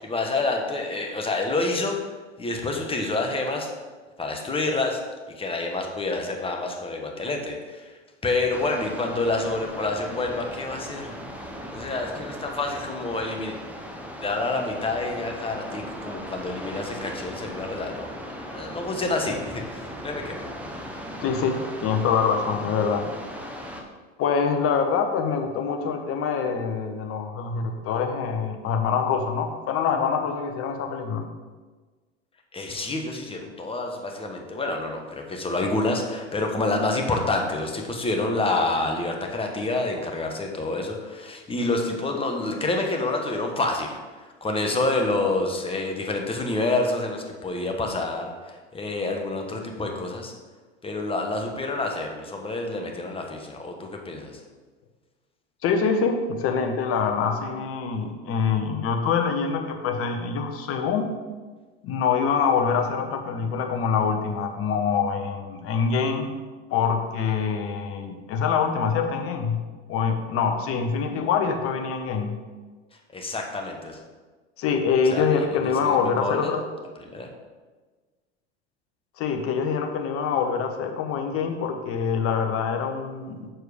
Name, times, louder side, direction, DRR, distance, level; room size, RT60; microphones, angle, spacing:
voice 1, 0.0-2.0 2.4-3.7 4.2-5.0 5.4-7.9 8.2-11.1 11.7-13.6 14.2-20.5 32.5-50.3 50.8-54.3 73.1-74.0 75.1-76.6 77.1-77.3, left 2 dB, 15° left, 2 dB, 1.2 m, -28 dB
sound 1, 8.5-23.8, equal, 5° right, 0.9 m, -38 dB
voice 2, 21.2-23.1 24.2-31.3 55.6-61.1 61.8-66.3 66.7-69.6 69.9-72.3 74.6-76.6 79.2-83.5, left 6 dB, 40° left, 5 dB, 1.0 m, -25 dB
6.7 x 4.6 x 5.0 m, 1.3 s
hypercardioid pair, 90°, 34 cm